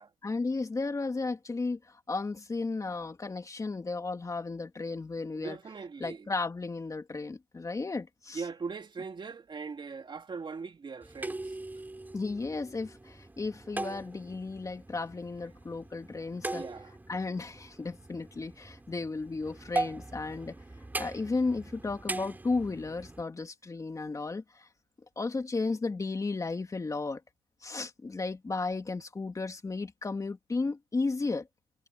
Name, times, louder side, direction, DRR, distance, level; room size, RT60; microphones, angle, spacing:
voice 1, 0.2-5.6 6.0-8.4 12.1-16.6 17.1-20.5 21.0-24.7 25.2-27.2 27.6-31.5, left 3 dB, 20° left, 2.6 m, -34 dB
voice 2, 5.3-6.3 8.3-11.6 16.5-17.0, right 5 dB, 25° right, 2.4 m, -40 dB
sound 1, 11.0-23.2, right 2 dB, 10° right, 3.6 m, -40 dB
cardioid pair, 115°, 17 cm